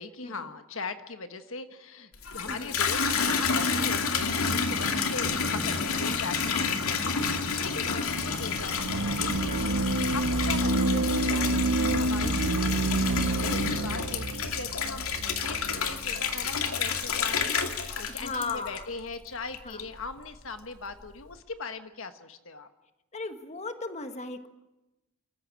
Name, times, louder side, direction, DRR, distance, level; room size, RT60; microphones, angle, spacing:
voice 1, 0.0-9.5 9.8-12.5 12.9-22.7, left 4 dB, 70° left, 9 dB, 1.4 m, -40 dB
Water tap faucet / Bathtub (filling or washing), 2.1-19.1 19.5-20.1, left 5 dB, 90° left, 2.4 m, -29 dB
sound 1, 8.8-16.0, right 2 dB, 80° right, 1.0 m, -28 dB
voice 2, 9.5-9.8 18.1-18.9 19.6-19.8 23.1-24.5, left 3 dB, 30° left, 8 dB, 1.6 m, -37 dB
28.0 x 15.0 x 10.0 m, 1.0 s
head